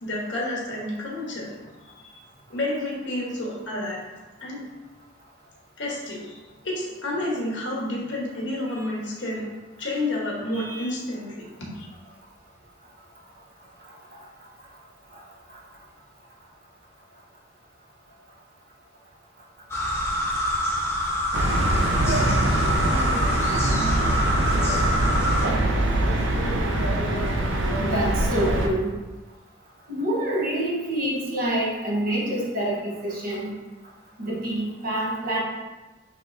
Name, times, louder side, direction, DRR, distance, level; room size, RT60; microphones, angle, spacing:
voice 1, 0.0-1.5 2.0-2.2 2.5-4.0 4.4-4.6 5.8-6.4 6.6-9.4 9.8-11.9, left 1 dB, 70° left, -4 dB, 1.2 m, -30 dB
voice 2, 10.5-10.9 27.8-28.9 29.9-33.5 34.2-35.4, right 1 dB, 45° right, -5 dB, 1.0 m, -27 dB
sound 1, 19.7-25.5, left 1 dB, 15° left, 0.5 m, -26 dB
sound 2, 21.3-28.7, right 1 dB, 75° right, 0.6 m, -23 dB
5.6 x 3.2 x 2.6 m, 1.2 s
head